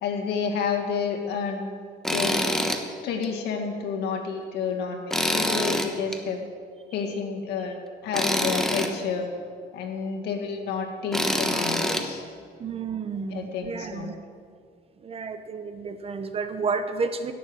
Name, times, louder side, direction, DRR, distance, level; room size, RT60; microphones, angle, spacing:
voice 1, 0.0-2.4 3.0-6.4 6.9-7.8 8.0-9.3 9.7-12.2 13.3-14.1, left 6 dB, 80° left, 2 dB, 2.0 m, -30 dB
Tools, 2.0-2.8 3.2-3.3 5.1-6.2 8.1-8.9 11.1-12.0, equal, 5° left, 1.1 m, -25 dB
voice 2, 12.6-14.2 15.0-17.3, right 4 dB, 35° right, 9 dB, 0.9 m, -31 dB
16.5 x 7.2 x 6.4 m, 2.1 s
cardioid pair, 110°, 17 cm